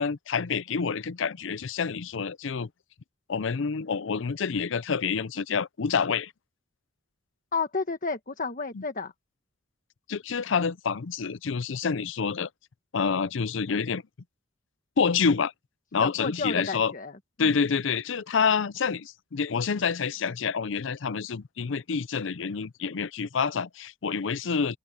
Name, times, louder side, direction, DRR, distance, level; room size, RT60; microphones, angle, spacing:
voice 1, 0.0-2.7 3.3-6.3 8.7-8.8 10.1-12.5 12.9-14.0 15.0-15.5 15.9-16.9 17.4-24.8, left 5 dB, 70° left, 0.6 m, -27 dB
voice 2, 7.5-9.1 16.0-17.1 17.4-17.6, left 4 dB, 45° left, 1.4 m, -31 dB
open air
head